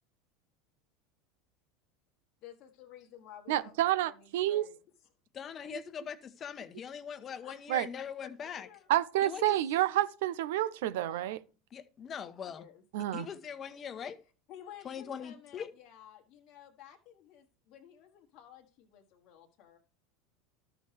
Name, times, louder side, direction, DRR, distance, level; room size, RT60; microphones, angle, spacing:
voice 1, 2.4-4.8 7.4-7.6 8.4-8.9 10.9-11.3 12.5-13.1 14.5-19.8, left 10 dB, 55° left, 1.3 m, -53 dB
voice 2, 3.5-4.7 5.7-5.8 7.7-7.9 8.9-11.4 12.9-13.3, right 13 dB, 75° right, 0.5 m, -29 dB
voice 3, 5.3-8.7 9.2-9.4 11.7-12.6 13.1-14.2 14.8-15.7, left 7 dB, 35° left, 1.0 m, -41 dB
12.5 x 6.0 x 3.4 m
hypercardioid pair, 85°, 0 cm